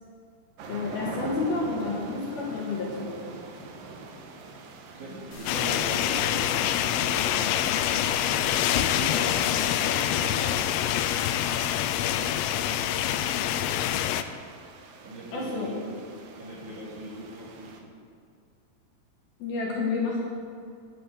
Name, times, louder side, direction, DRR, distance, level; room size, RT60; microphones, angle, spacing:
sound 1, 0.6-17.8, right 4 dB, 75° right, 2.0 m, -45 dB
voice 1, 0.7-3.2 15.3-15.7 19.4-20.2, left 3 dB, 55° left, -3 dB, 3.2 m, -30 dB
voice 2, 4.9-6.5 6.9-7.5 8.7-10.7 12.1-12.9 15.0-16.0 16.3-17.9, right 1 dB, 50° right, -5 dB, 2.9 m, -40 dB
sound 2, 5.3-10.3, left 2 dB, 40° left, 3.1 m, -42 dB
sound 3, 5.5-14.2, left 11 dB, 85° left, 3.1 m, -26 dB
10.5 x 10.0 x 9.3 m, 2.4 s
omnidirectional pair, 5.9 m